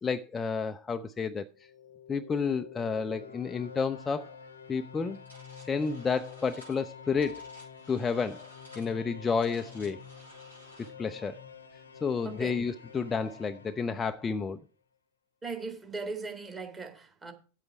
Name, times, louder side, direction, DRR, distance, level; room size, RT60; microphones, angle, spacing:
voice 1, 0.0-1.5 2.1-4.4 4.7-5.2 5.6-7.4 7.9-8.5 8.8-10.0 11.0-11.4 12.0-14.6, left 5 dB, 15° left, 0.4 m, -31 dB
sound 1, 1.5-14.6, left 7 dB, 70° left, 0.9 m, -48 dB
sound 2, 5.1-10.9, equal, 90° right, 6.5 m, -55 dB
voice 2, 15.4-17.3, right 4 dB, 20° right, 1.8 m, -38 dB
9.0 x 8.0 x 4.5 m
figure-of-eight pair, 90°, 0 cm